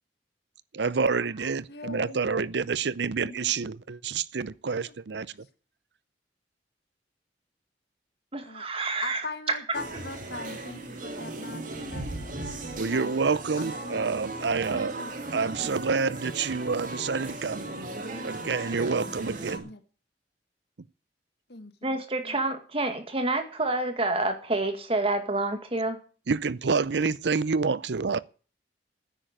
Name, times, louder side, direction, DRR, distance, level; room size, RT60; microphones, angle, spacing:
voice 1, 0.7-5.3 12.8-15.0 15.3-17.7 18.2-19.7 26.3-28.2, right 5 dB, 75° right, 0.6 m, -28 dB
voice 2, 1.7-2.3 3.1-3.5 4.7-4.8 8.4-8.7 9.0-12.3 12.8-13.1 13.6-14.0 14.7-15.1 19.6-19.8 21.5-22.4, left 3 dB, 65° left, 1.8 m, -41 dB
voice 3, 8.3-9.2 21.8-26.0, right 2 dB, 35° right, 2.0 m, -28 dB
sound 1, 9.7-19.6, right 2 dB, 50° right, 2.1 m, -37 dB
10.0 x 9.0 x 9.1 m
head